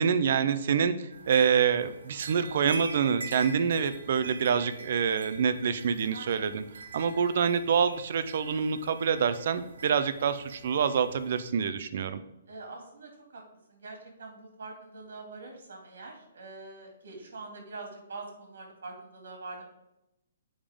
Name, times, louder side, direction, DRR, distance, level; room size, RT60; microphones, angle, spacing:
voice 1, 0.0-6.6 6.9-12.2, right 7 dB, 40° right, 12 dB, 0.4 m, -26 dB
sound 1, 1.1-11.5, right 3 dB, 85° right, 1.4 m, -45 dB
voice 2, 6.1-6.5 12.5-13.4 13.7-19.6, right 3 dB, 65° right, 2 dB, 2.3 m, -44 dB
7.1 x 5.0 x 3.6 m, 0.89 s
hypercardioid pair, 180°, 0 cm